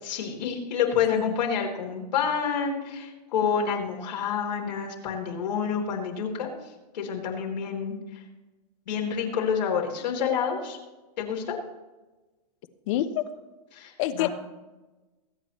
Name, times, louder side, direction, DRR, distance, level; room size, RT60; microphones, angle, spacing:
voice 1, 0.1-6.5 6.9-8.2 8.9-10.8 11.2-11.6 13.7-14.3, left 7 dB, 85° left, 0 dB, 3.6 m, -28 dB
voice 2, 12.9-13.2 14.0-14.3, left 13 dB, 50° left, 11 dB, 1.0 m, -27 dB
22.0 x 8.8 x 3.1 m, 1.1 s
hypercardioid pair, 145°, 21 cm